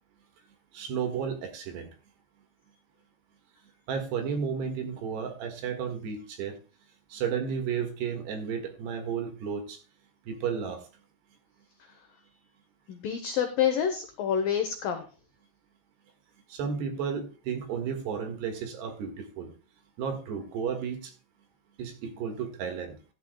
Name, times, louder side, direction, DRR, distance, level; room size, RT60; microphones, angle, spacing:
voice 1, 0.7-1.9 3.9-6.6 7.1-9.8 10.3-10.8 16.5-19.5 20.0-21.1 21.8-23.0, right 7 dB, 70° right, 5 dB, 3.6 m, -33 dB
voice 2, 11.8-12.2 12.9-15.1, left 8 dB, 85° left, 6 dB, 1.9 m, -28 dB
14.5 x 11.0 x 2.2 m, 0.35 s
omnidirectional pair, 5.3 m